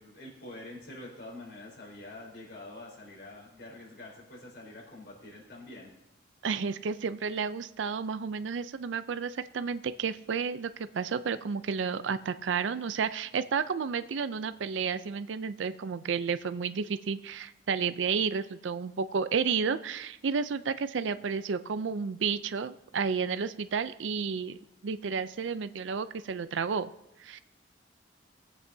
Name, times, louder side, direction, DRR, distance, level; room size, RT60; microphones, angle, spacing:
voice 1, 0.0-5.9, left 2 dB, 70° left, -3 dB, 4.4 m, -46 dB
voice 2, 6.4-24.6 24.8-26.9 27.2-27.4, right 6 dB, 90° right, 13 dB, 0.5 m, -31 dB
21.0 x 8.2 x 2.7 m, 0.86 s
head